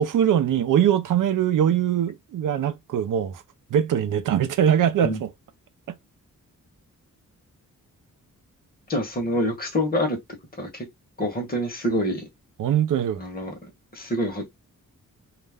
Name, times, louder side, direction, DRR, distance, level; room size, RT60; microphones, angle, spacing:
voice 1, 0.0-3.4 3.7-5.3 12.6-13.2, right 9 dB, 80° right, 0.5 m, -22 dB
voice 2, 8.9-10.2 10.6-10.9 11.2-12.2 13.2-13.5 13.9-14.5, equal, 30° left, 1.0 m, -26 dB
2.4 x 2.1 x 3.3 m
wide cardioid pair, 155°, 31 cm